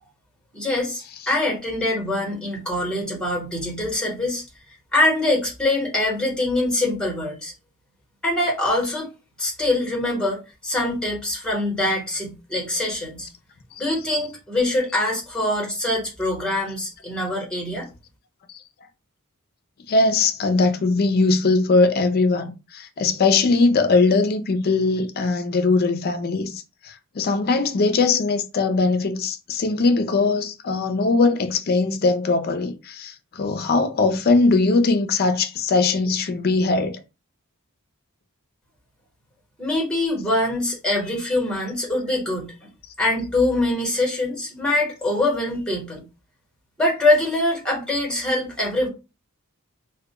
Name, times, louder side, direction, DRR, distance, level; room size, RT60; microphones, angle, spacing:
voice 1, 0.5-4.4 4.9-7.5 8.2-9.1 9.4-13.3 13.8-17.8 39.6-42.5 43.0-46.0 46.8-48.9, left 1 dB, 5° left, 1.0 m, -23 dB
voice 2, 19.9-37.0, left 3 dB, 45° left, 0.4 m, -20 dB
2.3 x 2.1 x 2.8 m
head